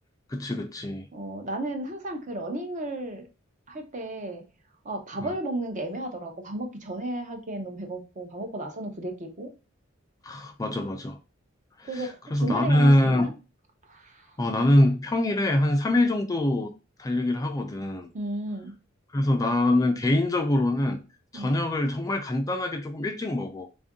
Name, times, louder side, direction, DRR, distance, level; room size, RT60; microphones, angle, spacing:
voice 1, 0.3-1.1 10.2-11.2 11.8-12.0 12.3-13.3 14.4-16.7 17.0-18.1 19.1-21.0 21.3-23.7, left 1 dB, 15° left, 0.3 m, -24 dB
voice 2, 1.1-3.2 3.7-4.4 4.8-9.5 11.8-13.3 13.8-14.4 18.1-18.7 21.3-21.6, right 1 dB, 40° right, 0.8 m, -34 dB
3.5 x 2.6 x 3.6 m
head